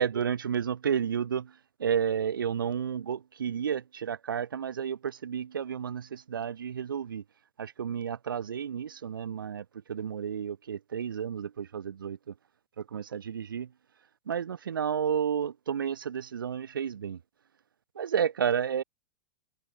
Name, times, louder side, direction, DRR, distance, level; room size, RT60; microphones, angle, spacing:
voice 1, 0.0-1.5 1.8-7.2 7.6-12.2 12.9-13.7 14.3-17.2 18.0-18.8, right 8 dB, 75° right, 4.5 m, -31 dB
open air
figure-of-eight pair, 100°, 11 cm